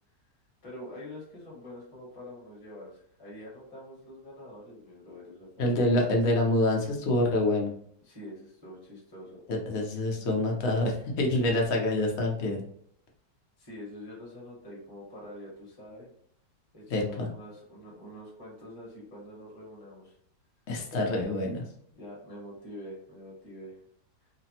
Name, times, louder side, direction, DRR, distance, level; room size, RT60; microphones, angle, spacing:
voice 1, 0.6-6.0 8.0-9.4 10.1-10.2 13.6-16.1 16.7-20.1 21.9-23.8, left 1 dB, 15° left, -6 dB, 1.0 m, -45 dB
voice 2, 5.6-7.7 9.5-12.6 16.9-17.3 20.7-21.6, left 1 dB, 60° left, 0 dB, 0.7 m, -26 dB
3.2 x 2.0 x 2.8 m, 0.64 s
omnidirectional pair, 1.9 m